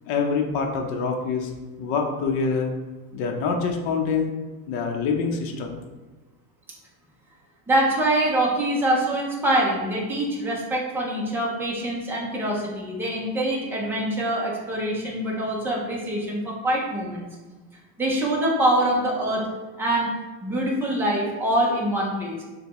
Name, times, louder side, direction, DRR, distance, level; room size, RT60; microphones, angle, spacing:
voice 1, 0.1-1.5 1.8-2.7 3.1-4.3 4.7-5.8, left 5 dB, 55° left, 2 dB, 0.7 m, -25 dB
voice 2, 7.7-17.2 18.0-19.4 19.8-20.1 20.4-22.4, right 1 dB, 5° right, -3 dB, 0.4 m, -24 dB
6.4 x 2.2 x 2.9 m, 1.2 s
supercardioid pair, 145°, 50 cm